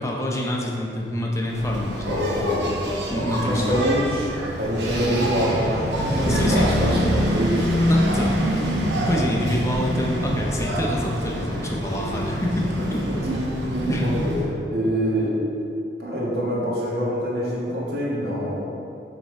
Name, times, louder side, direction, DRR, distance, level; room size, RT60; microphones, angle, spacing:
voice 1, 0.0-2.4 3.1-3.8 6.1-6.7 7.9-8.7 9.0-13.1 13.9-14.2, left 1 dB, 15° left, -2 dB, 0.7 m, -27 dB
Engine, 1.5-14.5, equal, 85° right, 1.0 m, -25 dB
voice 2, 2.0-3.0 3.4-7.8 13.1-15.3 16.0-18.6, equal, 65° right, -5 dB, 1.5 m, -25 dB
6.9 x 3.4 x 4.5 m, 2.8 s
head